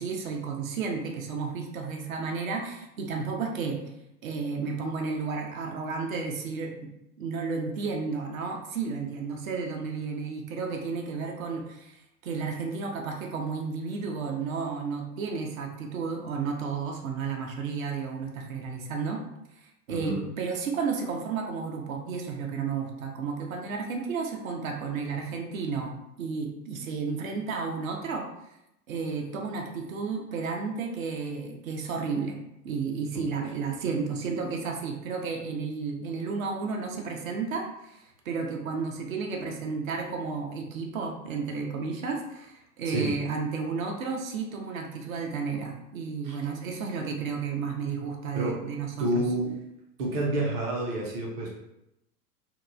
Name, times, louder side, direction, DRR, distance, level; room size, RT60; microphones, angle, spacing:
voice 1, 0.0-3.8 4.2-6.7 7.2-19.2 19.6-25.9 26.2-28.3 28.9-32.4 32.6-49.2, right 5 dB, 60° right, 2 dB, 0.7 m, -32 dB
voice 2, 19.9-20.3 42.9-43.1 46.2-46.4 48.3-48.6 49.0-49.5 50.0-51.5, right 1 dB, 25° right, -2 dB, 0.4 m, -29 dB
2.8 x 2.1 x 2.4 m, 0.85 s
figure-of-eight pair, 95°, 46 cm